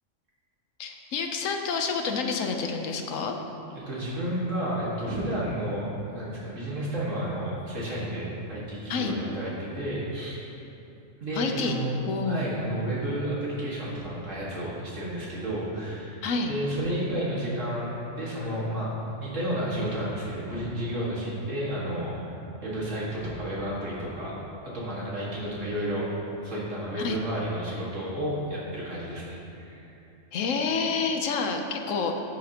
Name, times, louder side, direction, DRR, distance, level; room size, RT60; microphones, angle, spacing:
voice 1, 0.8-3.4 8.9-9.1 11.3-11.8 12.1-12.5 16.2-16.5 27.0-27.2 30.3-32.2, left 5 dB, 80° left, 4 dB, 1.1 m, -28 dB
voice 2, 3.7-5.9 6.1-10.4 11.2-16.2 16.5-22.3 22.6-24.3 24.7-26.1 26.4-29.9, right 1 dB, 70° right, -7 dB, 2.2 m, -31 dB
14.5 x 5.7 x 2.9 m, 3.0 s
omnidirectional pair, 1.3 m